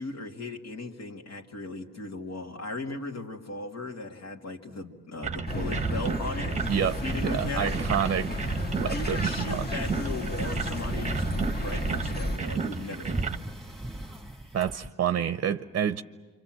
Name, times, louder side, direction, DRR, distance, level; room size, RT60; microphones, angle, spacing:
voice 1, 0.0-7.7 8.9-13.3, left 2 dB, 60° left, 1 dB, 2.4 m, -37 dB
sound 1, 5.2-13.4, right 5 dB, 25° right, 0.9 m, -33 dB
sound 2, 5.5-12.4, left 1 dB, 30° left, 1.6 m, -33 dB
sound 3, 6.6-14.9, right 1 dB, ahead, 1.7 m, -41 dB
voice 2, 6.7-7.0 7.2-8.4 8.8-9.7 14.5-16.0, right 9 dB, 45° right, 12 dB, 0.7 m, -28 dB
27.0 x 25.5 x 7.6 m, 1.4 s
cardioid pair, 90°, 30 cm